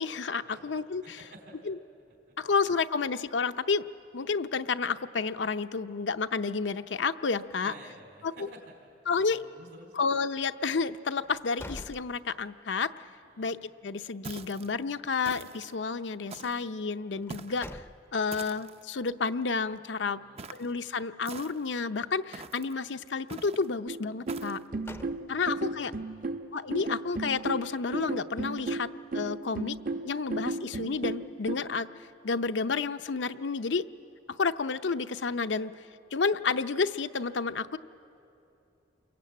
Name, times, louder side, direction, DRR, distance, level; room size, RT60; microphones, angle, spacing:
voice 1, 0.0-1.2 1.7-1.8 2.4-3.9 4.1-7.7 8.2-8.3 9.1-9.4 10.0-12.9 13.4-17.8 18.1-20.2 20.5-24.6 25.3-25.9 26.5-29.8 30.0-31.9 32.2-33.8 34.3-35.7 36.1-37.8, left 4 dB, 80° left, 10 dB, 0.6 m, -30 dB
voice 2, 1.0-1.6 2.3-2.4 7.6-10.0 13.2-13.5 17.6-17.7 20.2-20.8 24.9-25.2 25.6-26.4 26.6-26.7, right 1 dB, 65° right, 3 dB, 4.3 m, -52 dB
sound 1, 11.2-12.8 13.2-13.3 17.1-18.4 24.4-25.7, left 1 dB, 15° left, 0.5 m, -46 dB
sound 2, 14.2-14.7 15.2-15.7 16.3-16.7 17.3-17.7 18.3-18.8 20.4-20.7 21.2-21.8 22.3-22.7 23.3-23.7 24.3-24.6, right 4 dB, 35° right, 0.6 m, -44 dB
sound 3, 23.9-31.6, right 3 dB, 50° right, 0.9 m, -34 dB
29.0 x 22.5 x 8.7 m, 2.7 s
head